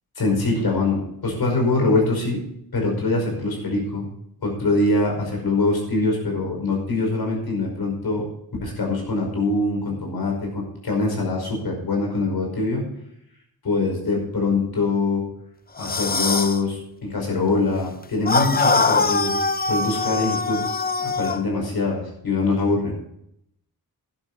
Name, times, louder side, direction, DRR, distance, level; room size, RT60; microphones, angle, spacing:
voice 1, 0.2-2.4 2.7-4.1 4.4-8.3 8.6-12.9 13.6-15.2 15.8-19.4 19.6-20.6 21.0-22.9, left 2 dB, 75° left, 0 dB, 5.4 m, -23 dB
sound 1, 15.8-16.6 18.3-21.4, left 4 dB, 25° left, 0.6 m, -22 dB
12.0 x 11.5 x 4.2 m, 0.73 s
wide cardioid pair, 160°, 38 cm